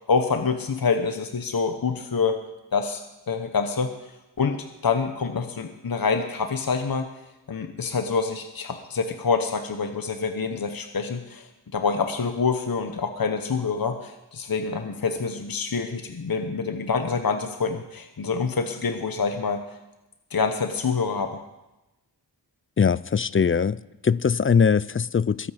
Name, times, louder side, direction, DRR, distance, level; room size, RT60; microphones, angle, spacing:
voice 1, 0.0-2.3 2.7-3.0 3.3-3.9 4.4-7.1 7.5-19.6 20.3-21.4, left 5 dB, 55° left, 7 dB, 1.0 m, -26 dB
voice 2, 22.8-23.8 24.0-25.5, left 6 dB, 30° left, 19 dB, 0.4 m, -21 dB
22.5 x 8.6 x 5.0 m, 0.99 s
wide cardioid pair, 60°, 43 cm